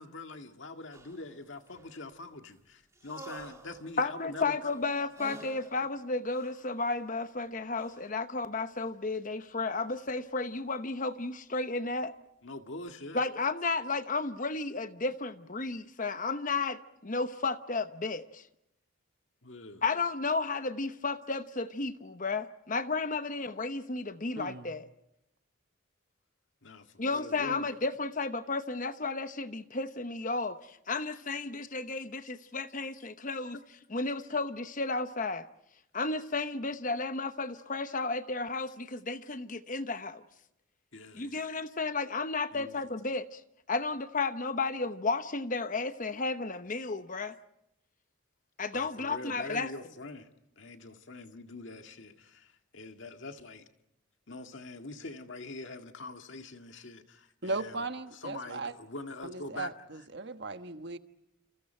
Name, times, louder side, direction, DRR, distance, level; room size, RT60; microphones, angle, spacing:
voice 1, 0.0-4.6 12.4-13.2 19.4-19.8 26.6-27.7 40.9-41.3 42.5-42.9 48.7-50.3 50.6-53.7 54.3-57.8 58.1-59.7, left 2 dB, 65° left, 1.9 m, -44 dB
sound 1, 0.9-2.4 2.9-7.1 7.8-8.2 9.9-10.2 11.1-11.2, right 2 dB, 15° right, 2.0 m, -51 dB
voice 2, 4.0-12.1 13.1-18.4 19.8-24.9 27.0-33.6 33.9-35.5 35.9-40.2 41.1-43.4 43.7-47.3 48.6-49.7, left 3 dB, 40° left, 0.9 m, -33 dB
voice 3, 24.4-24.7 57.4-58.7 59.2-61.0, right 3 dB, 55° right, 1.3 m, -37 dB
29.5 x 28.0 x 4.5 m
head